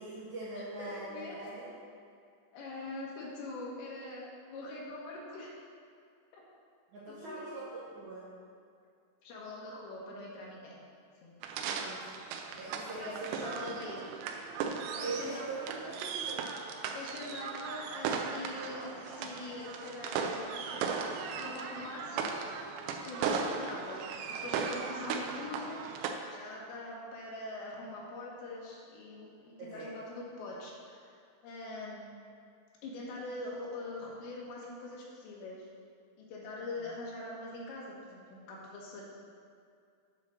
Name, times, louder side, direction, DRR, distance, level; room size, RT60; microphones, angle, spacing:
voice 1, 0.0-1.7 6.9-8.3 11.6-12.1 12.5-13.5 14.9-16.5 29.6-29.9, right 2 dB, 70° right, -7 dB, 1.9 m, -42 dB
voice 2, 0.6-1.4 2.5-5.6 6.3-6.4 7.1-7.6 9.2-10.8 11.2-11.3 12.8-14.0 15.0-15.7 16.9-22.3 23.0-25.8 26.3-31.1 31.4-32.0 32.8-35.7 36.2-39.0, left 2 dB, 85° left, -3 dB, 3.8 m, -43 dB
sound 1, 11.4-26.1, right 6 dB, 85° right, 2.9 m, -37 dB
9.5 x 5.1 x 6.4 m, 2.3 s
omnidirectional pair, 4.9 m